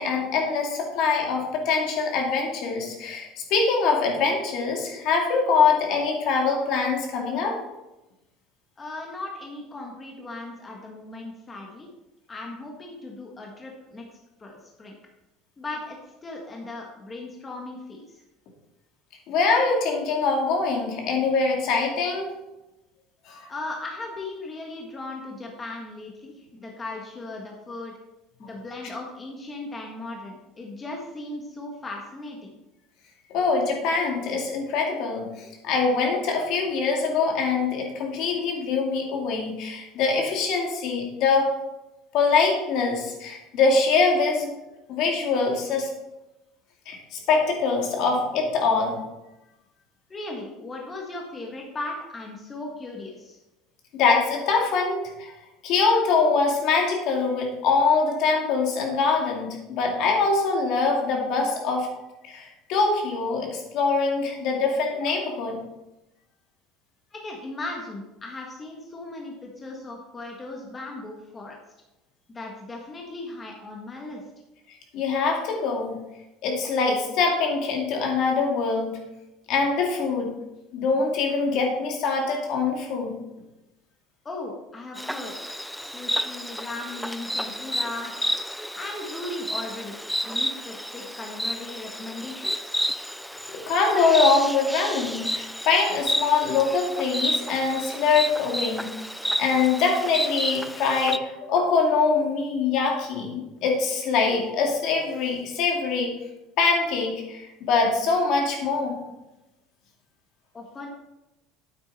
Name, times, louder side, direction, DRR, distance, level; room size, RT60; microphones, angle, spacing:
voice 1, 0.0-7.6 19.3-22.3 23.3-23.5 33.3-41.5 42.1-44.5 44.9-45.9 46.9-49.0 53.9-55.3 55.6-61.9 62.2-65.6 74.9-76.0 76.4-78.9 79.5-80.3 80.7-83.2 93.7-98.9 99.4-106.1 106.6-109.0, left 4 dB, 60° left, 1 dB, 2.5 m, -23 dB
voice 2, 8.8-11.9 12.3-14.1 14.4-15.0 15.6-18.2 23.5-27.9 28.4-32.6 50.1-53.4 67.1-71.6 72.3-74.2 84.2-85.3 85.8-88.1 88.7-89.9 90.2-92.7 110.5-110.9, left 2 dB, 20° left, 0 dB, 1.6 m, -37 dB
Insect, 85.0-101.2, equal, ahead, 0.3 m, -31 dB
9.1 x 8.6 x 4.2 m, 0.98 s
cardioid pair, 135°, 0 cm